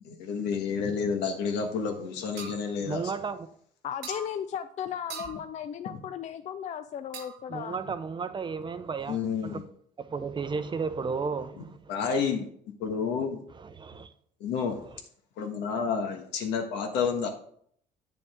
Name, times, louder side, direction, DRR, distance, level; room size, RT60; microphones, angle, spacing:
voice 1, 0.0-3.0 9.1-9.6 11.9-12.5 12.8-13.4 14.4-14.8 15.4-17.3, left 6 dB, 90° left, 1.4 m, -30 dB
sound 1, 2.4-2.6 4.0-4.3 5.1-5.4 7.1-7.5, right 5 dB, 90° right, 1.3 m, -40 dB
voice 2, 2.8-3.4 7.5-9.6 10.0-11.9 13.5-14.1, right 5 dB, 30° right, 0.6 m, -33 dB
voice 3, 3.8-7.8, left 9 dB, 45° left, 0.4 m, -36 dB
8.5 x 6.9 x 3.6 m
cardioid pair, 110°, 17 cm